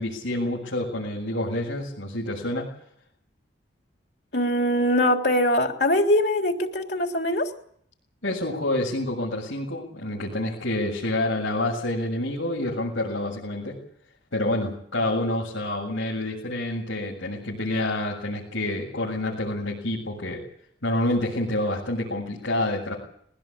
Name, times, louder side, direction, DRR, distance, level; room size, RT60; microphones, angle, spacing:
voice 1, 0.0-2.7 8.2-13.8 14.3-20.4 20.8-22.9, left 1 dB, 80° left, -4 dB, 7.3 m, -28 dB
voice 2, 4.3-7.5, left 1 dB, 55° left, 4 dB, 3.4 m, -22 dB
22.5 x 19.5 x 8.9 m, 0.65 s
head